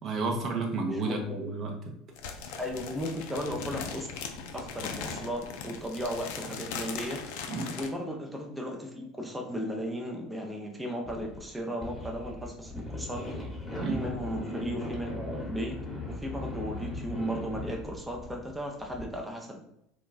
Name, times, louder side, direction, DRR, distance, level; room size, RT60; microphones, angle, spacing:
voice 1, 0.0-1.9 7.5-7.8 13.8-14.0, right 3 dB, 45° right, 1 dB, 0.7 m, -31 dB
voice 2, 0.9-1.4 2.6-4.1 4.5-7.2 7.7-13.2 13.9-15.7 16.1-19.6, equal, 10° right, 1 dB, 0.6 m, -35 dB
sound 1, 2.2-7.9, left 5 dB, 70° left, 0.4 m, -39 dB
sound 2, 11.0-11.5 11.8-19.1, left 2 dB, 15° left, 1.1 m, -39 dB
2.4 x 2.2 x 3.9 m, 0.78 s
hypercardioid pair, 75°, 0 cm